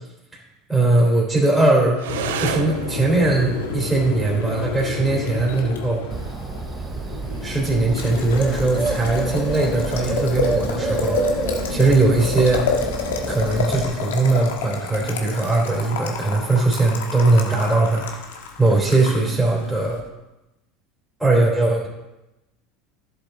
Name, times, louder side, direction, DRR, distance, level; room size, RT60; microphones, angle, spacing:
voice 1, 0.7-2.0 2.4-6.0 7.4-11.2 11.7-12.7 13.3-18.2 18.6-20.0 21.2-21.9, right 2 dB, 5° right, -5 dB, 3.1 m, -20 dB
sound 1, 1.9-10.9, right 9 dB, 80° right, 0.6 m, -37 dB
Boiling, 2.1-20.0, left 4 dB, 85° left, 1.3 m, -29 dB
Bird, 6.1-13.9, right 4 dB, 25° right, 0.7 m, -29 dB
11.5 x 7.2 x 3.9 m, 0.98 s
hypercardioid pair, 95°, 0 cm